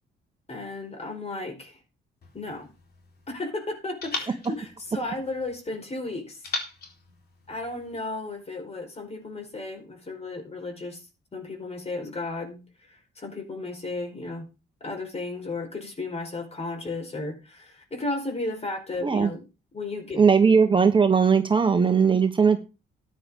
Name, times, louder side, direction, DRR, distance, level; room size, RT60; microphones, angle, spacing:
voice 1, 0.5-1.8 2.3-2.7 3.3-6.4 7.5-11.0 11.3-14.5 14.8-19.4 19.7-20.6, left 2 dB, 30° left, 4.7 m, -34 dB
sound 1, 2.2-3.4 4.0-5.6 6.4-8.0, left 3 dB, 55° left, 4.1 m, -39 dB
voice 2, 20.2-22.6, right 6 dB, 25° right, 1.3 m, -19 dB
13.5 x 9.7 x 3.8 m
cardioid pair, 90°, 20 cm